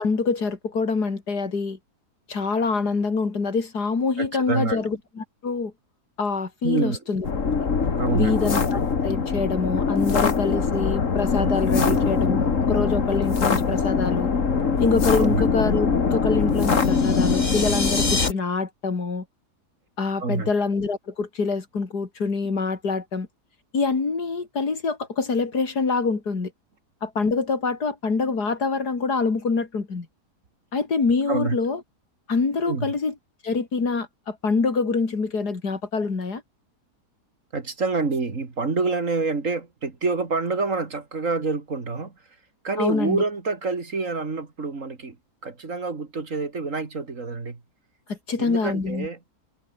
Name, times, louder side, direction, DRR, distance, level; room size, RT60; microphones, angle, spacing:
voice 1, 0.0-1.8 2.3-5.7 6.2-7.3 8.1-14.3 14.8-19.2 20.0-23.3 23.7-26.5 27.0-30.1 30.7-31.8 32.3-33.1 33.4-36.4 42.8-43.2 48.1-49.1, left 4 dB, 75° left, 3.6 m, -25 dB
voice 2, 4.2-4.8 6.6-7.0 8.0-8.4 11.7-12.0 15.2-15.4 20.2-20.5 31.3-31.6 32.7-32.9 37.5-42.1 42.6-45.2 45.4-47.6 48.4-49.2, right 4 dB, 50° right, 2.9 m, -27 dB
sound 1, 7.2-18.3, left 5 dB, 50° left, 2.3 m, -22 dB
sound 2, 16.7-18.3, left 2 dB, 25° left, 2.6 m, -28 dB
omnidirectional pair, 1.7 m